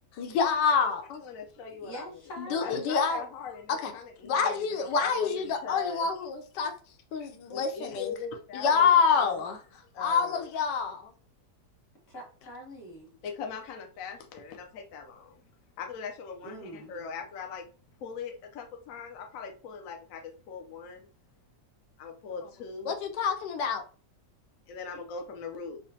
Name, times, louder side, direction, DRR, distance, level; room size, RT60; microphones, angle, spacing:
voice 1, 0.1-1.2 2.4-3.2 3.7-3.9 4.2-6.7 7.1-8.1 8.5-9.6 10.0-11.1 22.8-23.8, left 6 dB, 90° left, 6 dB, 1.3 m, -27 dB
voice 2, 1.2-2.1 2.6-6.0 7.2-8.9 9.2-9.4 9.9-10.4 13.2-15.4 15.8-17.7 18.0-21.1 22.0-22.9 24.7-25.8, left 6 dB, 70° left, 3 dB, 0.8 m, -40 dB
voice 3, 1.8-2.9 12.1-13.1 16.4-16.9, right 1 dB, 40° left, -1 dB, 1.4 m, -43 dB
4.9 x 2.1 x 2.7 m, 0.39 s
omnidirectional pair, 1.8 m